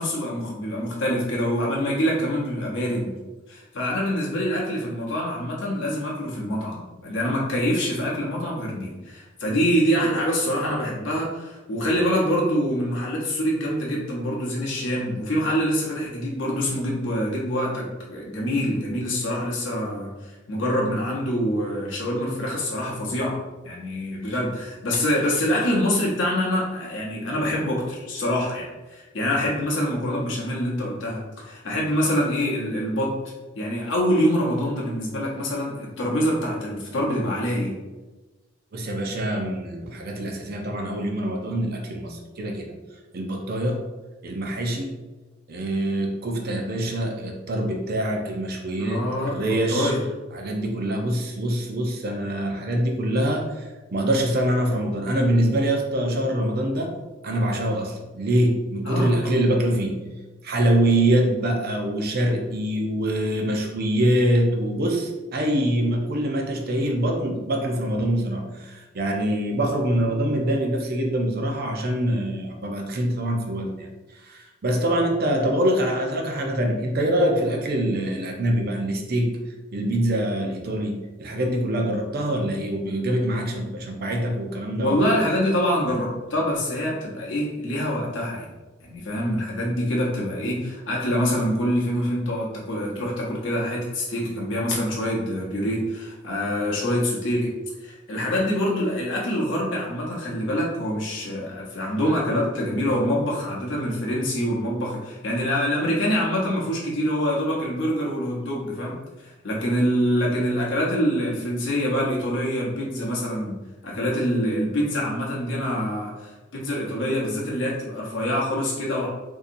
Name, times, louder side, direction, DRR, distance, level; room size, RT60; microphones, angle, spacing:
voice 1, 0.0-3.2 3.5-23.4 23.6-33.1 33.6-37.7 48.8-50.0 58.8-59.1 84.8-88.5 88.8-97.5 97.8-108.9 109.2-113.5 113.8-119.1, equal, 65° left, -4 dB, 0.9 m, -25 dB
voice 2, 38.7-42.7 43.1-43.8 44.2-44.9 45.5-49.9 50.3-56.9 57.2-60.0 60.4-73.9 74.2-79.4 79.7-85.1, right 1 dB, 50° right, 2 dB, 0.6 m, -24 dB
3.9 x 2.8 x 2.6 m, 1.2 s
head